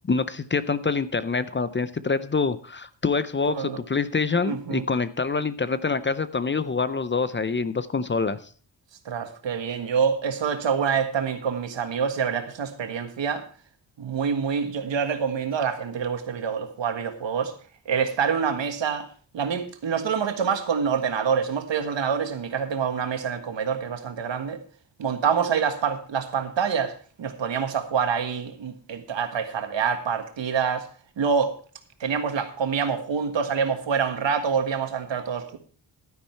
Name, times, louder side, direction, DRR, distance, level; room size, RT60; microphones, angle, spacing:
voice 1, 0.1-8.4, left 4 dB, 25° left, 0.5 m, -26 dB
voice 2, 3.5-3.8 4.4-4.8 9.0-13.4 14.0-17.5 17.8-19.1 19.3-24.6 25.0-30.9 31.2-31.5 32.0-35.6, right 6 dB, 90° right, 1.7 m, -26 dB
12.0 x 10.0 x 4.5 m
wide cardioid pair, 165°, 43 cm